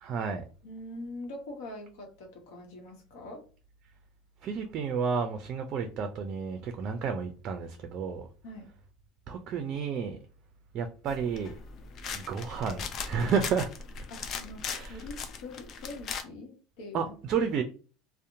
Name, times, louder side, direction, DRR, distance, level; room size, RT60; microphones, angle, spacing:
voice 1, 0.0-0.5 4.4-8.3 9.3-10.2 10.7-11.5 12.1-13.7 14.7-15.0 16.9-17.6, right 6 dB, 50° right, 0.4 m, -31 dB
voice 2, 0.6-3.4 8.4-8.7 14.1-17.1, left 2 dB, 75° left, 0.8 m, -43 dB
sound 1, 11.1-16.2, left 5 dB, 50° left, 0.4 m, -39 dB
2.7 x 2.0 x 2.6 m
supercardioid pair, 90°, 0 cm